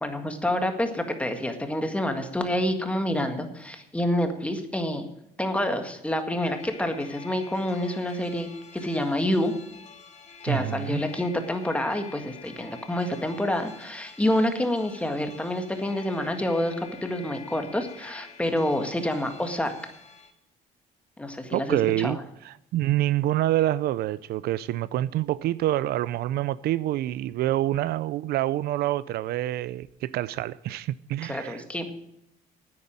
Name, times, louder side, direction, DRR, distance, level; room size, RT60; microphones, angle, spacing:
voice 1, 0.0-5.1 5.4-9.5 10.4-19.7 21.2-22.2 31.3-31.9, left 1 dB, 5° left, 1.8 m, -28 dB
sound 1, 6.4-20.3, left 6 dB, 40° left, 2.1 m, -48 dB
voice 2, 10.5-11.0 21.5-22.2 22.4-31.6, right 14 dB, 70° right, 0.5 m, -27 dB
9.6 x 9.5 x 8.8 m
cardioid pair, 110°, 17 cm